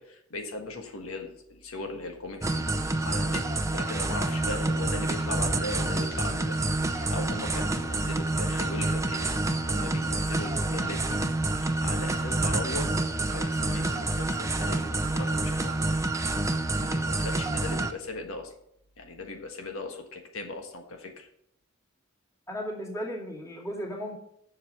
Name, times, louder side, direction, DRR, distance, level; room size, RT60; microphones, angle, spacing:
voice 1, 0.0-3.5 3.7-6.6 6.9-11.2 11.6-12.9 13.3-16.0 16.8-18.5 19.0-21.3, left 2 dB, 85° left, 4 dB, 1.5 m, -38 dB
sound 1, 2.4-17.9, right 2 dB, 15° right, 0.6 m, -28 dB
voice 2, 22.5-24.2, equal, 15° left, -2 dB, 2.4 m, -35 dB
7.6 x 6.7 x 7.6 m, 0.74 s
head